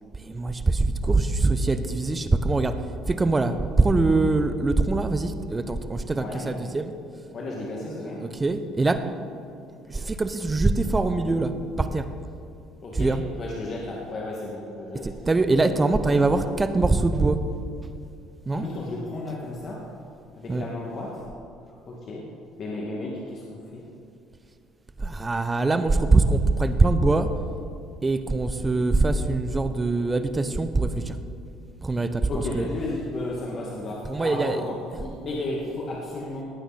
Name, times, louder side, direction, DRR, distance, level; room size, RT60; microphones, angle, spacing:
voice 1, 0.2-2.8 3.1-6.9 8.2-9.0 9.9-12.1 12.9-13.2 15.0-17.4 18.4-18.6 20.5-20.6 25.0-27.3 28.0-31.2 31.8-32.3 32.5-32.7 34.0-34.6, right 3 dB, 25° right, 10 dB, 1.0 m, -23 dB
voice 2, 6.1-6.5 7.3-8.2 12.8-15.2 15.8-16.4 18.5-19.9 20.4-21.2 21.9-22.2 22.6-23.8 32.3-36.4, left 2 dB, 50° left, -3 dB, 2.2 m, -33 dB
18.0 x 9.2 x 4.3 m, 2.5 s
hypercardioid pair, 65°, 0 cm